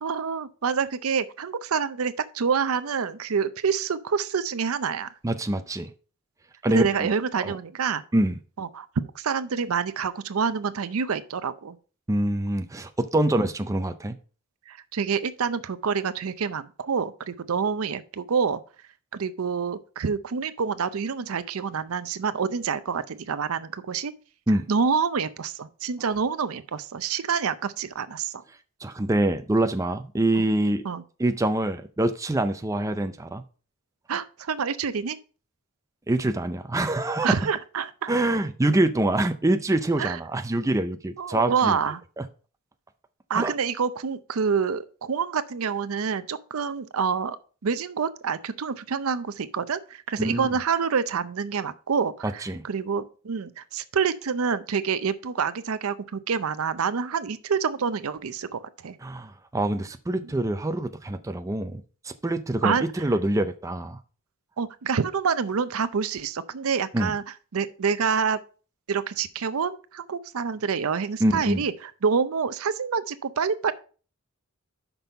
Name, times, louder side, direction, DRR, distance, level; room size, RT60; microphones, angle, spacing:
voice 1, 0.0-5.1 6.7-8.0 8.6-8.9 9.1-11.8 14.7-18.6 19.1-24.1 24.7-28.4 30.3-30.4 30.8-31.0 34.1-35.2 37.2-38.1 40.0-40.2 41.2-42.0 43.3-47.4 47.6-59.0 60.2-60.3 62.6-62.8 64.6-67.2 67.5-68.4 68.9-73.7, right 6 dB, 70° right, 0.5 m, -27 dB
voice 2, 5.2-5.9 6.6-7.1 7.4-7.5 8.1-8.4 12.1-14.1 24.5-24.7 28.8-30.8 31.2-33.4 36.1-37.4 38.1-41.8 42.2-42.3 43.3-43.5 50.2-50.5 52.2-52.6 59.0-64.0 66.9-67.1 71.2-71.6, right 1 dB, 15° right, 0.5 m, -25 dB
6.0 x 5.3 x 5.3 m
head